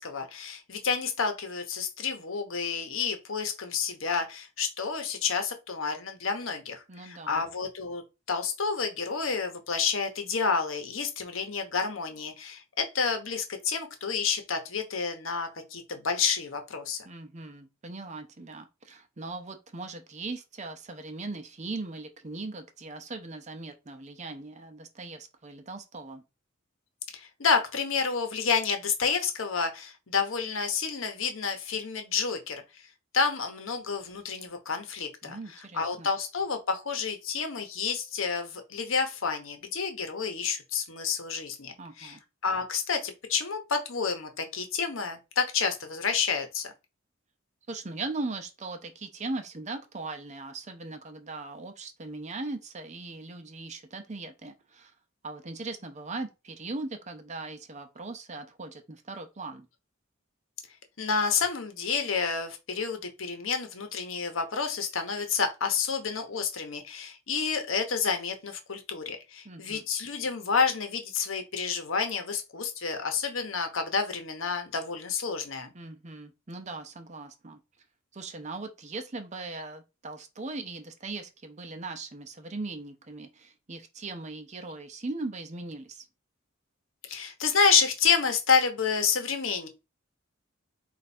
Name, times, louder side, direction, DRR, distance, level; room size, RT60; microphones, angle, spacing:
voice 1, 0.0-8.0 8.3-17.1 27.1-32.6 33.1-35.4 35.7-42.2 42.4-46.7 61.0-75.7 87.1-89.7, left 5 dB, 70° left, 1.0 m, -29 dB
voice 2, 6.9-7.4 17.1-26.2 35.2-36.1 41.8-42.2 47.7-54.9 55.2-59.7 69.4-69.8 75.7-77.6 78.1-86.0, right 3 dB, 35° right, 0.6 m, -39 dB
4.5 x 2.5 x 4.2 m
head